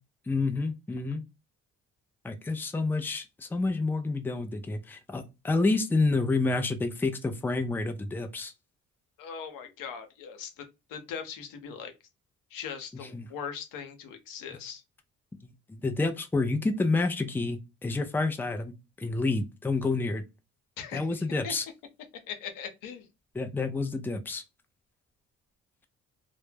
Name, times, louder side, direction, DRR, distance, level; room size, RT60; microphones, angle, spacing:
voice 1, 0.3-1.2 2.2-8.5 13.1-13.3 15.7-20.2 20.9-21.6 23.3-24.4, left 3 dB, 5° left, 0.4 m, -29 dB
voice 2, 9.2-10.6 10.9-11.9 12.5-14.8 20.8-21.5 22.3-23.1, left 7 dB, 80° left, 0.7 m, -40 dB
2.1 x 2.0 x 3.2 m
cardioid pair, 75°, 33 cm